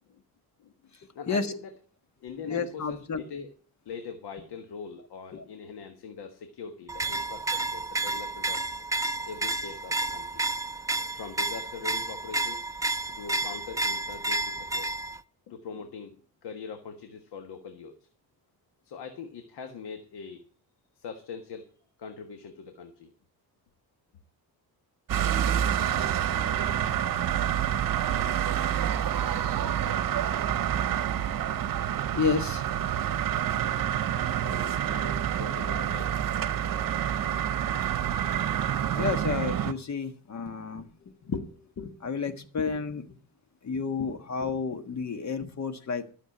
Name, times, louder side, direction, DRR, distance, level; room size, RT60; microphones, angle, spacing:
voice 1, 1.1-1.7 2.2-3.5 3.8-8.6 9.3-10.4 11.1-12.9 13.1-14.9 15.5-16.2 16.4-17.9 18.8-20.4 21.0-21.7 22.0-23.1 34.0-36.2, left 5 dB, 80° left, 7 dB, 1.5 m, -42 dB
voice 2, 2.5-3.2 5.3-5.4 32.1-32.6 38.9-43.1 43.6-46.1, left 5 dB, 45° left, 9 dB, 1.5 m, -31 dB
sound 1, 6.9-15.2, right 2 dB, 10° right, 0.5 m, -31 dB
sound 2, 25.1-39.7, right 10 dB, 60° right, 0.9 m, -28 dB
13.0 x 6.7 x 7.8 m, 0.43 s
cardioid pair, 115°, 39 cm